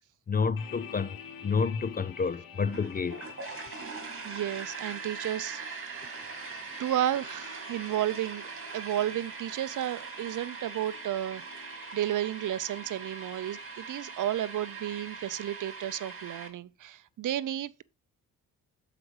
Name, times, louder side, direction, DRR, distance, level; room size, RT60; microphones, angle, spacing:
voice 1, 0.3-3.2, left 5 dB, 25° left, 0.4 m, -29 dB
sound 1, 0.6-15.1, left 8 dB, 70° left, 1.4 m, -50 dB
sound 2, 2.7-16.5, right 5 dB, 35° right, 2.3 m, -42 dB
voice 2, 4.2-6.0 6.8-8.4 8.7-11.5 11.9-17.8, right 12 dB, 55° right, 0.6 m, -32 dB
7.7 x 4.9 x 4.8 m
cardioid pair, 80°, 36 cm